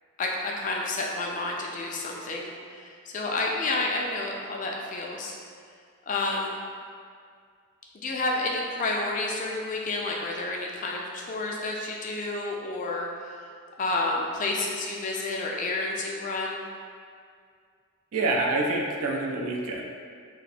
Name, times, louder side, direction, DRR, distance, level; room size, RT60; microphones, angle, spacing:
voice 1, 0.2-5.3 6.1-6.6 7.9-13.4 13.8-16.6, left 2 dB, 35° left, -1 dB, 0.3 m, -30 dB
voice 2, 18.1-19.8, right 2 dB, 80° right, 0 dB, 0.4 m, -26 dB
2.5 x 2.1 x 4.0 m, 2.2 s
head